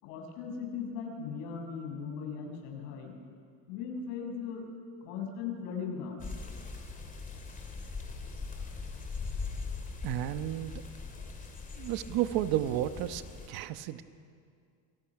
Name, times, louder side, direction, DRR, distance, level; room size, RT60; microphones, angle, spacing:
voice 1, 0.0-3.2 3.7-4.6 5.0-6.2, left 6 dB, 80° left, 2 dB, 6.4 m, -38 dB
sound 1, 6.2-13.5, left 4 dB, 15° left, 2.9 m, -41 dB
voice 2, 10.0-10.8 11.8-13.2 13.5-14.0, right 13 dB, 50° right, 11 dB, 1.2 m, -32 dB
28.0 x 26.5 x 6.0 m, 2.3 s
cardioid pair, 150°, 47 cm